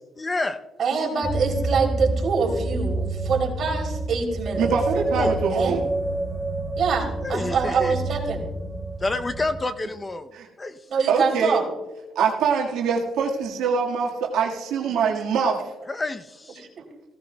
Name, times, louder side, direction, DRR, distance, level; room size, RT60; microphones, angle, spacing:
voice 1, 0.1-0.6 5.1-5.3 7.2-8.1 9.0-10.3 10.6-10.8 15.9-16.6, left 2 dB, 25° left, 10 dB, 0.6 m, -28 dB
voice 2, 0.8-4.7 5.5-5.8 6.8-8.4 10.9-11.6 14.9-15.0, right 5 dB, 60° right, 0 dB, 3.2 m, -25 dB
sound 1, 1.2-9.6, right 2 dB, ahead, 1.7 m, -28 dB
voice 3, 4.6-5.8 10.3-10.5 11.1-11.6 12.2-15.6, right 6 dB, 90° right, -1 dB, 1.6 m, -24 dB
16.0 x 15.0 x 2.2 m, 1.1 s
cardioid pair, 90°, 0 cm